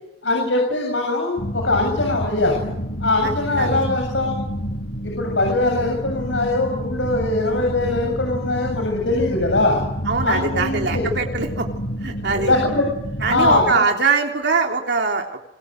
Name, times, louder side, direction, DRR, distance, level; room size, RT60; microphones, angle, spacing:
voice 1, 0.2-2.7 3.0-4.4 5.0-9.8 10.2-11.0 12.3-12.9 13.3-13.9, left 2 dB, 85° left, 1 dB, 7.7 m, -21 dB
sound 1, 1.4-13.7, equal, 65° left, 7.6 m, -29 dB
voice 2, 3.2-3.8 10.1-11.7 12.0-12.5 13.2-15.4, right 4 dB, 65° right, 3 dB, 3.4 m, -22 dB
28.0 x 24.5 x 8.0 m, 0.85 s
head